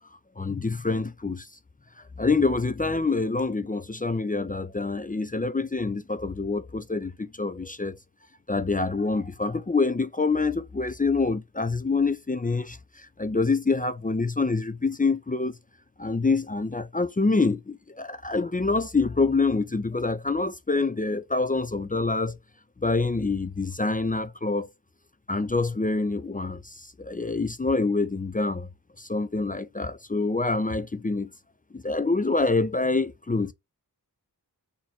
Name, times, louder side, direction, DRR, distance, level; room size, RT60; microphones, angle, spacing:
voice 1, 0.4-1.5 2.2-8.0 8.5-15.5 16.0-22.4 22.8-24.7 25.3-28.7 29.0-31.3 31.7-33.5, left 3 dB, 20° left, 0.4 m, -26 dB
4.1 x 2.7 x 4.1 m
wide cardioid pair, 45°, 40 cm